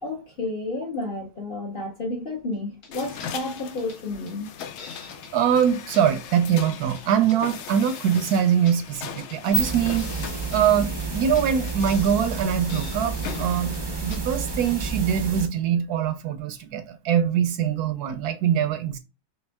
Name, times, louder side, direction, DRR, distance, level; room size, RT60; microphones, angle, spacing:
voice 1, 0.0-4.5, left 2 dB, 40° left, 0.9 m, -31 dB
sound 1, 2.8-2.9 3.2-3.3 3.6-4.0 4.3-5.3 5.6-5.7 5.9-6.7 7.0-8.0 8.3-9.4 9.7-10.7 11.0-11.1 11.3-11.4 11.7-12.1 12.4-12.5 12.7-13.5 13.7-13.8 14.1-14.2 14.5-14.9 15.2-15.3, left 4 dB, 60° left, 1.6 m, -44 dB
sound 2, 2.9-14.9, left 8 dB, 75° left, 0.6 m, -40 dB
voice 2, 5.3-10.2 10.5-13.7 14.0-19.0, right 8 dB, 70° right, 1.0 m, -23 dB
sound 3, 9.3-15.5, right 4 dB, 35° right, 0.4 m, -30 dB
5.2 x 3.4 x 2.2 m
omnidirectional pair, 1.8 m